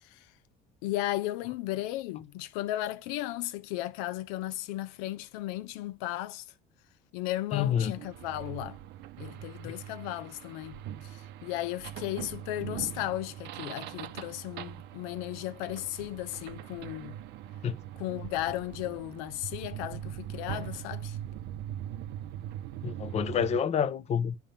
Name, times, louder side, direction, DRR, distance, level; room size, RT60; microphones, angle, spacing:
voice 1, 0.8-6.4 7.1-8.8 9.2-17.2 18.0-21.2, left 15 dB, 90° left, 0.8 m, -35 dB
voice 2, 7.5-7.9 9.6-9.7 17.6-17.7 22.8-24.4, left 8 dB, 35° left, 0.8 m, -28 dB
sound 1, 8.0-23.6, right 11 dB, 65° right, 0.7 m, -41 dB
10.5 x 3.5 x 5.7 m
cardioid pair, 130°, 19 cm